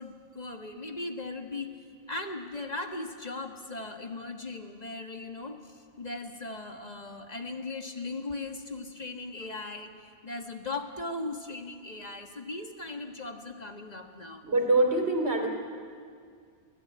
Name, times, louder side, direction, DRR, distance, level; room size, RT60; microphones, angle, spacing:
voice 1, 0.0-1.7 2.1-9.9 10.2-14.4, left 2 dB, 40° left, 4 dB, 1.6 m, -38 dB
voice 2, 14.4-15.5, right 2 dB, 90° right, 3 dB, 3.1 m, -24 dB
24.5 x 16.5 x 8.6 m, 2.1 s
omnidirectional pair, 1.1 m